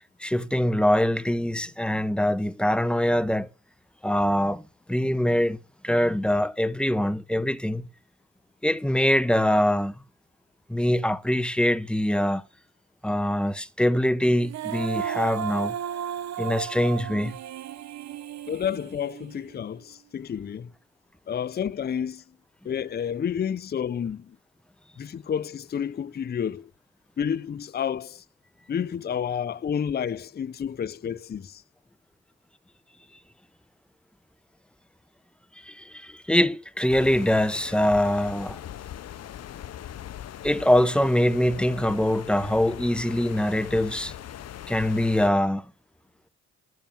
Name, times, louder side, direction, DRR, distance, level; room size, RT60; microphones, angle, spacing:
voice 1, 0.2-3.5 4.0-4.6 4.9-5.6 5.8-7.9 8.6-9.9 10.7-12.4 13.0-15.8 16.4-17.3 35.6-38.6 40.4-44.1 44.7-45.6, left 1 dB, 5° left, 0.9 m, -23 dB
Female singing, 14.4-19.6, right 9 dB, 65° right, 0.9 m, -34 dB
voice 2, 18.5-20.7 21.3-22.2 22.6-24.4 25.0-26.7 27.2-28.2 28.7-31.6, left 8 dB, 35° left, 0.6 m, -30 dB
sound 1, 36.9-45.3, left 11 dB, 55° left, 0.9 m, -40 dB
12.0 x 7.0 x 9.1 m
cardioid pair, 90°, 30 cm